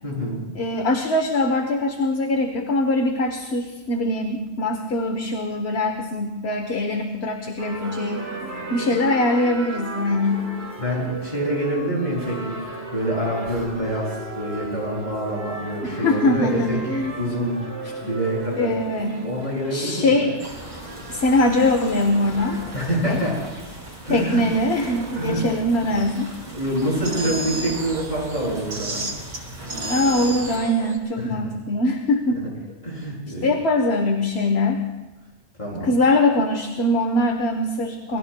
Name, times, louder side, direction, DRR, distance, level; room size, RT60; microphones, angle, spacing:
voice 1, 0.0-0.4 10.8-12.6 12.9-16.8 17.2-17.6 18.0-18.7 19.2-20.3 22.7-23.4 24.0-24.4 25.1-25.4 26.5-29.0 31.2-31.4 32.3-32.4 32.8-33.5 35.6-35.9, equal, 40° left, -4 dB, 6.6 m, -26 dB
voice 2, 0.6-8.2 8.7-10.5 15.8-17.4 18.6-19.2 19.7-20.4 21.1-22.6 23.1-23.2 24.1-26.3 29.8-32.4 33.4-34.8 35.8-38.2, left 1 dB, 70° left, 5 dB, 1.3 m, -22 dB
sound 1, 7.6-22.7, right 3 dB, 70° right, 2.2 m, -36 dB
sound 2, 17.8-18.2 19.0-21.3 21.6-24.0 24.3-26.6 26.9-31.0, right 2 dB, 90° right, 2.3 m, -35 dB
sound 3, 20.4-30.6, right 1 dB, 45° right, 3.8 m, -40 dB
27.0 x 20.0 x 2.2 m, 1.2 s
omnidirectional pair, 1.1 m